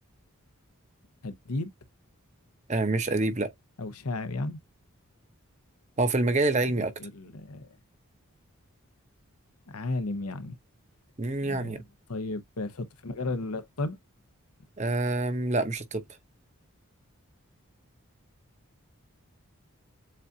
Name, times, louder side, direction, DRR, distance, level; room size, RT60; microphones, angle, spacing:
voice 1, 1.2-1.7 3.8-4.6 7.0-7.7 9.7-10.6 11.4-11.8 12.1-14.0, left 2 dB, 90° left, 0.9 m, -33 dB
voice 2, 2.7-3.5 6.0-6.9 11.2-11.8 14.8-16.0, right 2 dB, 30° right, 0.8 m, -26 dB
7.5 x 2.5 x 2.8 m
head